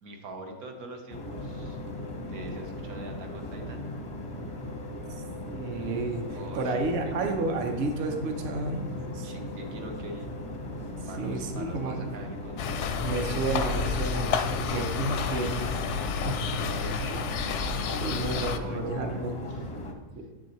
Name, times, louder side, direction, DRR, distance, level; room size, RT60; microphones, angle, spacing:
voice 1, 0.0-1.8 2.3-3.9 6.3-7.4 9.2-10.4 11.1-12.7 16.3-19.6, right 1 dB, 80° right, 2 dB, 1.4 m, -44 dB
sound 1, 1.1-19.9, left 1 dB, 35° left, 0.5 m, -38 dB
voice 2, 5.5-9.3 11.2-12.0 13.0-15.8 16.2-16.3 18.0-19.3 20.1-20.3, right 2 dB, 55° right, 4 dB, 0.9 m, -31 dB
sound 2, 12.6-18.6, left 5 dB, 65° left, 0.7 m, -30 dB
7.6 x 6.2 x 3.0 m, 1.3 s
omnidirectional pair, 1.6 m